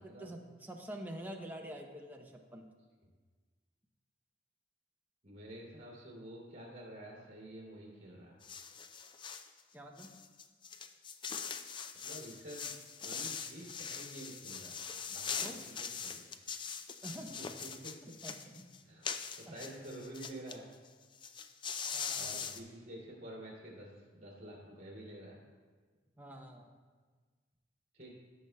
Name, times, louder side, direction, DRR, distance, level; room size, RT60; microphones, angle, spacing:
voice 1, 0.0-2.7 9.7-10.1 15.4-15.6 17.0-17.4 18.0-18.7 19.5-19.6 21.9-22.4 26.2-26.7, right 1 dB, 10° right, 2 dB, 0.7 m, -47 dB
voice 2, 5.2-8.4 11.9-12.7 13.0-14.8 15.1-16.3 17.1-17.5 17.8-17.9 18.8-19.1 19.4-20.7 22.2-25.4 27.9-28.1, right 1 dB, 45° right, -5 dB, 2.4 m, -49 dB
sound 1, 8.4-9.5 10.0-20.6 20.8-20.9 21.1-22.6, left 6 dB, 25° left, 0.3 m, -42 dB
16.0 x 6.3 x 2.2 m, 1.5 s
head